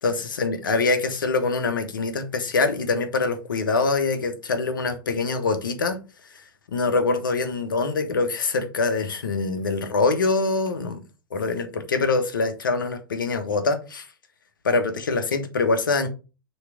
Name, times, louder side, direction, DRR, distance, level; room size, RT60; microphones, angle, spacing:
voice 1, 0.0-6.0 6.7-11.0 11.3-14.1 14.6-16.1, left 3 dB, 70° left, 1.2 m, -24 dB
6.4 x 3.2 x 4.7 m
figure-of-eight pair, 95°, 11 cm